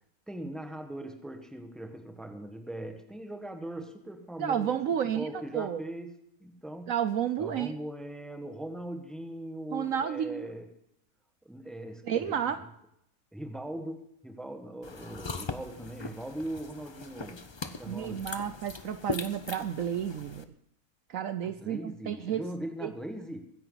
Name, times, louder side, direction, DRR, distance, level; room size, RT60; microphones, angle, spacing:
voice 1, 0.3-6.1 6.4-6.9 7.4-10.7 11.4-12.6 13.3-17.5 17.8-18.3 21.4-23.5, right 1 dB, ahead, 5 dB, 1.3 m, -40 dB
voice 2, 4.4-5.8 6.9-7.8 9.7-10.5 12.1-12.6 17.9-20.5 21.1-22.4 22.8-22.9, right 9 dB, 65° right, 11 dB, 1.0 m, -31 dB
sound 1, 14.8-20.4, left 4 dB, 35° left, 0.4 m, -40 dB
23.0 x 10.0 x 4.0 m, 0.74 s
omnidirectional pair, 1.6 m